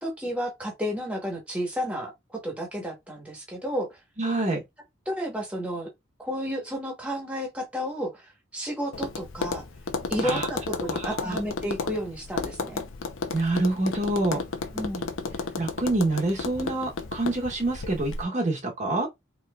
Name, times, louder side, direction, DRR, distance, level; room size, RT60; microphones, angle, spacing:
voice 1, 0.0-4.0 5.1-5.9 6.2-9.6 10.1-12.8 14.7-15.1, equal, 5° right, 1.0 m, -32 dB
voice 2, 4.2-4.6 10.2-10.5 10.9-11.4 13.3-14.4 15.6-19.1, right 2 dB, 35° right, 0.9 m, -26 dB
Tap, 8.9-18.2, left 4 dB, 85° left, 0.6 m, -33 dB
4.6 x 2.8 x 2.3 m
head